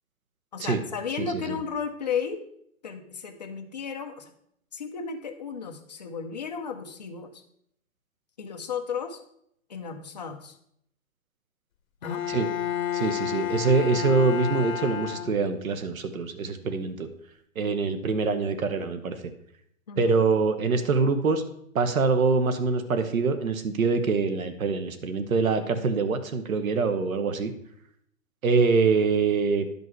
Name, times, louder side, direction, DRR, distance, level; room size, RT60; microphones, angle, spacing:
voice 1, 0.5-2.4 2.8-4.3 4.7-7.4 8.4-9.2 9.7-10.6 12.0-12.2 19.9-20.2, left 6 dB, 30° left, 4 dB, 0.7 m, -34 dB
voice 2, 1.2-1.6 12.3-12.5 12.9-17.1 17.5-19.2 20.0-21.4 21.7-27.5 28.4-29.7, right 4 dB, 75° right, 9 dB, 1.3 m, -24 dB
Bowed string instrument, 12.0-15.8, left 11 dB, 80° left, 0.9 m, -31 dB
11.0 x 5.4 x 4.6 m, 0.71 s
hypercardioid pair, 175°, 42 cm